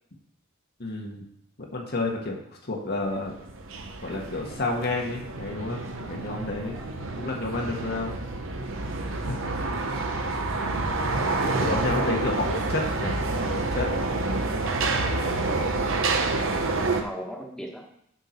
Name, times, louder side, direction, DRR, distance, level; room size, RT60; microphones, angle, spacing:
voice 1, 0.8-1.2 1.7-3.4 4.0-8.2 9.0-9.5 11.6-13.9, left 2 dB, 50° left, 0 dB, 1.4 m, -31 dB
sound 1, 3.1-17.0, right 3 dB, 70° right, 0.9 m, -28 dB
voice 2, 6.6-6.9 11.0-12.0 15.2-15.6 16.4-17.8, equal, 5° left, -2 dB, 1.4 m, -39 dB
6.9 x 5.7 x 5.9 m, 0.74 s
head